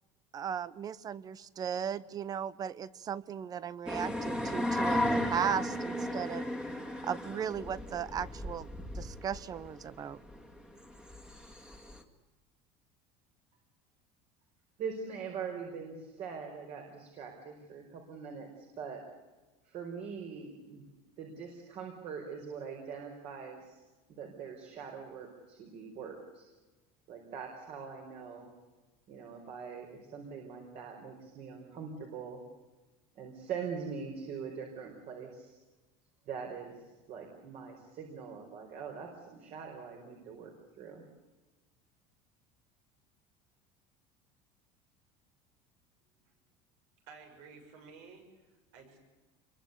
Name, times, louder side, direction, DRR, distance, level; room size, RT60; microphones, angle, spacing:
voice 1, 0.3-6.5 6.7-8.7 8.9-10.2, right 8 dB, 25° right, 19 dB, 0.9 m, -36 dB
sound 1, 3.9-12.0, left 1 dB, 5° right, 2.2 m, -35 dB
voice 2, 14.8-19.0 19.6-20.8 21.2-26.5 27.1-28.5 29.1-32.4 33.1-35.6 36.2-41.0, right 6 dB, 50° right, 2 dB, 5.0 m, -43 dB
voice 3, 47.1-49.0, right 5 dB, 70° right, 5 dB, 7.2 m, -53 dB
28.0 x 23.0 x 8.4 m, 1.2 s
cardioid pair, 160°, 14 cm